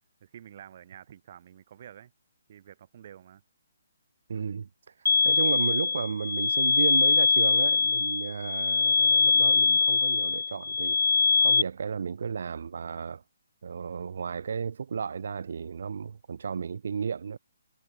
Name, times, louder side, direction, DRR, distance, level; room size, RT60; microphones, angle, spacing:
voice 1, 0.2-2.1 2.5-3.4, right 10 dB, 50° right, 5.9 m, -49 dB
voice 2, 4.3-4.7 5.2-11.0 11.4-13.2 13.6-17.4, right 6 dB, 65° right, 3.3 m, -33 dB
sound 1, 5.1-11.6, left 5 dB, 70° left, 0.3 m, -23 dB
figure-of-eight pair, 140°, 0 cm